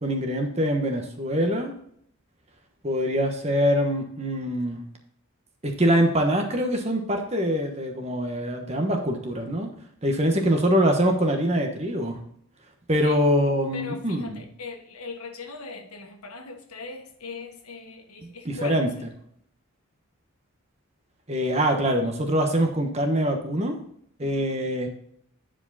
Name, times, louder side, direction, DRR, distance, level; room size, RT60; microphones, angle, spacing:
voice 1, 0.0-1.7 2.8-4.8 5.6-9.7 10.0-12.2 12.9-14.4 18.2-19.1 21.3-23.8 24.2-24.9, equal, 30° right, 4 dB, 1.2 m, -24 dB
voice 2, 13.7-19.0 24.2-24.6, left 4 dB, 90° left, 4 dB, 1.6 m, -39 dB
9.7 x 5.0 x 4.1 m, 0.67 s
head